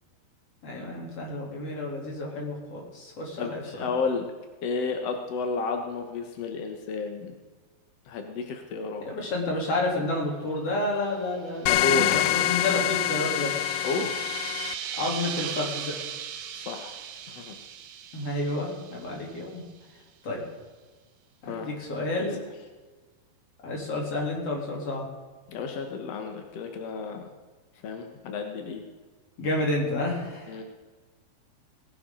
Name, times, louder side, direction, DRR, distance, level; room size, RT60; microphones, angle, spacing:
voice 1, 0.6-3.9 9.1-13.6 15.0-16.0 18.1-19.6 20.2-20.4 21.4-22.4 23.6-25.0 29.4-30.6, left 2 dB, 35° left, -2 dB, 4.1 m, -30 dB
voice 2, 3.4-4.3 4.6-7.3 8.1-9.1 11.7-12.1 13.8-14.2 16.5-17.0 17.3-17.6 21.4-21.7 22.2-22.3 25.5-27.2 27.8-28.8 30.5-30.6, left 4 dB, 70° left, 4 dB, 1.5 m, -32 dB
sound 1, 11.3-19.6, right 8 dB, 85° right, 3.2 m, -39 dB
sound 2, 11.7-14.7, left 13 dB, 85° left, 2.6 m, -25 dB
19.0 x 11.0 x 3.9 m, 1.3 s
omnidirectional pair, 4.8 m